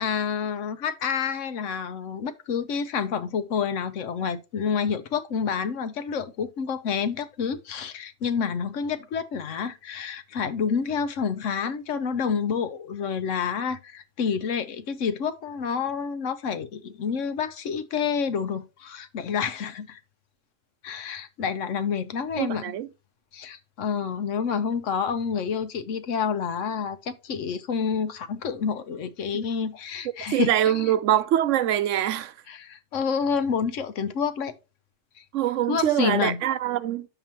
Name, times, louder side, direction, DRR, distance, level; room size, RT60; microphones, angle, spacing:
voice 1, 0.0-20.0 20.8-22.7 23.3-30.9 32.5-34.5 35.7-36.4, left 6 dB, 85° left, 1.2 m, -28 dB
voice 2, 22.4-22.9 30.3-32.3 35.3-37.1, right 11 dB, 85° right, 1.0 m, -24 dB
8.9 x 6.9 x 2.9 m
omnidirectional pair, 1.3 m